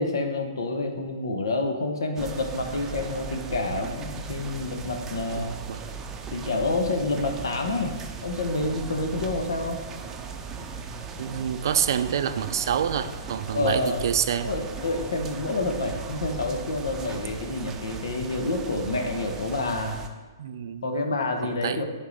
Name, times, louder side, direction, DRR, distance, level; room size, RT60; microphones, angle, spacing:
voice 1, 0.0-5.6 6.3-8.0 8.2-9.8 13.5-14.0 14.4-20.0 20.8-21.8, left 2 dB, 80° left, 4 dB, 1.1 m, -28 dB
sound 1, 2.2-20.1, right 5 dB, 20° right, 0.6 m, -38 dB
voice 2, 5.4-5.9 10.6-10.7 11.2-14.5 20.4-20.9 21.4-21.8, right 8 dB, 60° right, 12 dB, 0.4 m, -27 dB
10.5 x 3.7 x 4.1 m, 1.3 s
hypercardioid pair, 130°, 2 cm